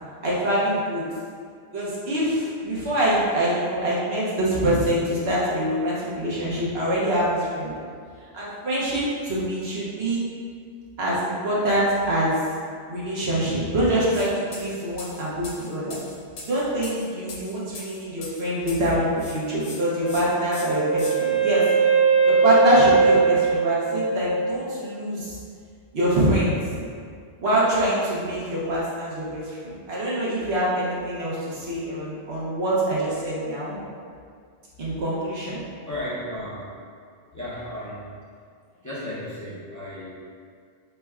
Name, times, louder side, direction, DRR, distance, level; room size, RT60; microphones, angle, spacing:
voice 1, 0.2-1.0 1.7-7.7 8.3-10.2 11.0-12.4 12.9-16.0 16.4-21.6 22.2-25.4 25.9-26.5 27.4-33.8 34.8-35.6, right 1 dB, 70° right, -7 dB, 1.1 m, -25 dB
sound 1, 14.1-14.3 14.5-18.9 19.2-19.8 20.1-20.2 20.5-21.1, left 3 dB, 80° left, 1.0 m, -40 dB
Wind instrument woodwind instrument, 20.0-24.9, right 4 dB, 55° left, 0.8 m, -21 dB
voice 2, 35.8-36.6 37.3-38.1 38.8-40.1, left 1 dB, 20° left, -10 dB, 0.6 m, -34 dB
4.2 x 3.3 x 2.3 m, 2.1 s
omnidirectional pair, 1.1 m